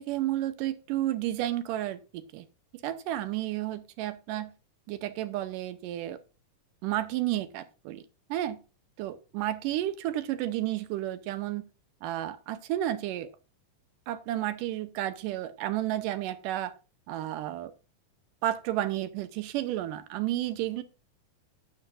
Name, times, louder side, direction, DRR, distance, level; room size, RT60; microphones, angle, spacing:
voice 1, 0.0-2.5 2.8-4.5 4.9-6.2 6.8-8.0 8.3-8.6 9.0-11.7 12.0-13.3 14.1-16.7 17.1-17.7 18.4-20.8, right 13 dB, 85° right, 12 dB, 2.4 m, -32 dB
12.0 x 8.9 x 2.5 m, 0.32 s
omnidirectional pair, 3.7 m